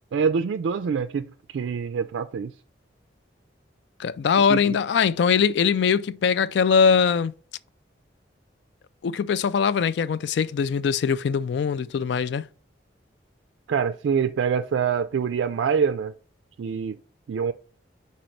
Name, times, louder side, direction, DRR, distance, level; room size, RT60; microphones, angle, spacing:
voice 1, 0.1-2.5 4.5-4.8 13.7-16.1 16.6-17.0 17.3-17.5, right 6 dB, 75° right, 0.3 m, -25 dB
voice 2, 4.0-7.3 9.0-12.4, left 6 dB, 65° left, 0.3 m, -22 dB
5.2 x 4.2 x 4.4 m
head